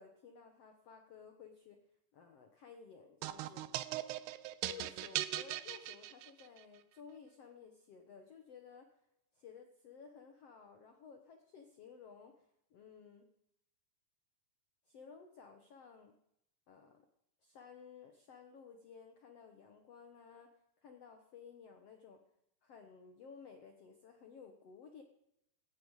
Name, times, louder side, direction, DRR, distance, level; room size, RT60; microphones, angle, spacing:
voice 1, 0.0-1.8 2.1-3.7 4.6-9.0 9.3-13.3 14.9-16.2 16.7-17.1 17.4-20.5 20.8-22.2 22.6-25.0, left 6 dB, 75° left, 6 dB, 1.4 m, -55 dB
sound 1, 3.2-6.6, right 15 dB, 85° right, 2.7 m, -40 dB
17.5 x 15.0 x 4.8 m, 0.80 s
omnidirectional pair, 4.6 m